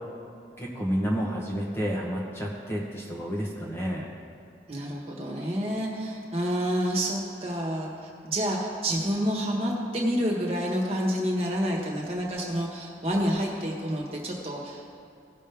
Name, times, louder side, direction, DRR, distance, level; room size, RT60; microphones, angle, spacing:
voice 1, 0.6-4.1, equal, 15° left, -3 dB, 1.1 m, -30 dB
voice 2, 4.7-15.0, equal, 35° right, -2 dB, 1.6 m, -28 dB
17.0 x 6.4 x 3.5 m, 2.6 s
head